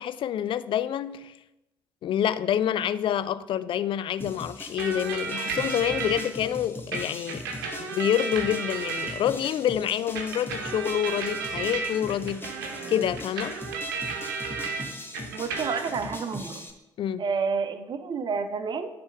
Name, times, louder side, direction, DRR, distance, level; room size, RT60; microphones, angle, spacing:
voice 1, 0.0-1.4 2.0-7.5 7.8-13.6 17.0-17.2, left 10 dB, 55° left, 0.4 m, -27 dB
sound 1, 4.2-16.7, left 1 dB, 20° left, 1.2 m, -41 dB
sound 2, 4.8-6.2 6.9-9.5 10.1-14.8 15.1-16.1, right 5 dB, 80° right, 0.9 m, -33 dB
voice 2, 15.3-16.7 17.2-18.9, right 5 dB, 50° right, 0.8 m, -29 dB
10.0 x 3.5 x 5.5 m
hypercardioid pair, 40°, 10 cm